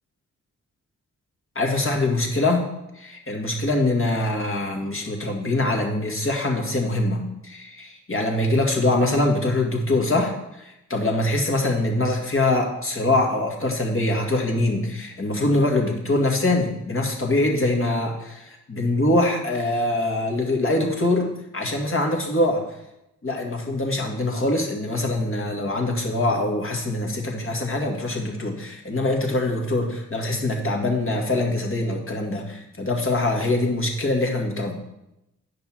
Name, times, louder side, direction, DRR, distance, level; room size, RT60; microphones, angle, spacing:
voice 1, 1.6-2.7 3.0-22.6 23.2-34.7, left 2 dB, 35° left, 1 dB, 2.1 m, -23 dB
8.4 x 5.3 x 4.6 m, 0.88 s
supercardioid pair, 40°, 35 cm